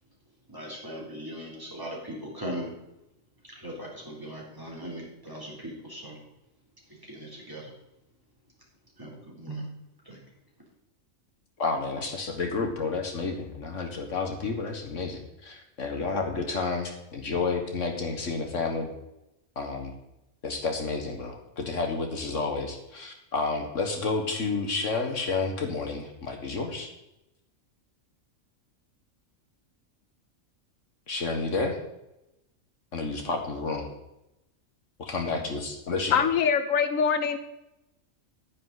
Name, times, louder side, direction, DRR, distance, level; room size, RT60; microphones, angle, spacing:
voice 1, 0.5-2.7 3.5-6.2 6.9-7.7 9.0-9.6 10.1-10.2, equal, 15° right, -4 dB, 3.5 m, -39 dB
voice 2, 11.6-18.9 19.6-19.9 20.4-26.9 31.1-31.8 32.9-33.9 35.0-36.1, left 4 dB, 65° left, 3 dB, 1.8 m, -30 dB
voice 3, 36.1-37.4, left 7 dB, 85° left, 10 dB, 1.2 m, -23 dB
11.0 x 9.9 x 4.0 m, 0.89 s
omnidirectional pair, 1.4 m